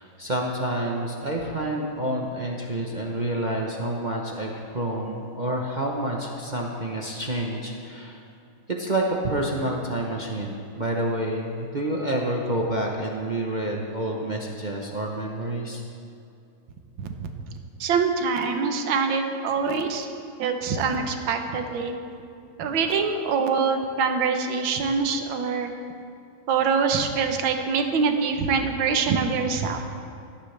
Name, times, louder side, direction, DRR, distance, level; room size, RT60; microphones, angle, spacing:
voice 1, 0.0-8.2 8.8-15.8, right 1 dB, 35° right, -1 dB, 0.7 m, -28 dB
voice 2, 17.0-17.3 17.8-20.1 20.4-21.9 22.6-25.7 26.5-29.8, right 5 dB, 70° right, 5 dB, 1.7 m, -24 dB
17.5 x 13.0 x 3.4 m, 2.6 s
omnidirectional pair, 2.3 m